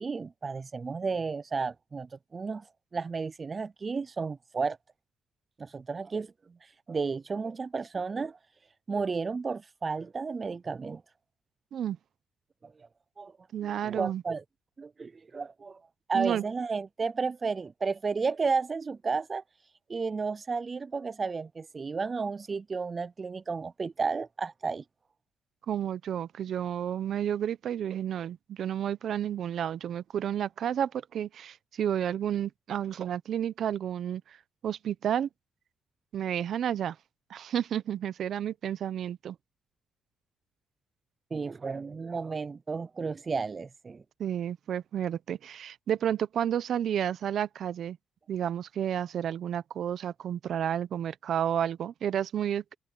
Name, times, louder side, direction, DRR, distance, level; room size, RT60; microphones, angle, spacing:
voice 1, 0.0-2.6 2.9-4.8 5.6-6.3 6.9-8.4 8.9-11.0 12.6-12.7 13.2-13.3 13.6-14.4 14.8-15.8 16.1-19.4 19.9-24.8 41.3-44.0, right 4 dB, 35° right, 0.4 m, -32 dB
voice 2, 13.5-14.2 16.1-16.4 25.7-34.4 34.6-35.3 36.1-37.0 37.3-39.4 44.2-48.0 48.3-52.6, right 9 dB, 65° right, 0.9 m, -31 dB
cardioid pair, 90°, 0 cm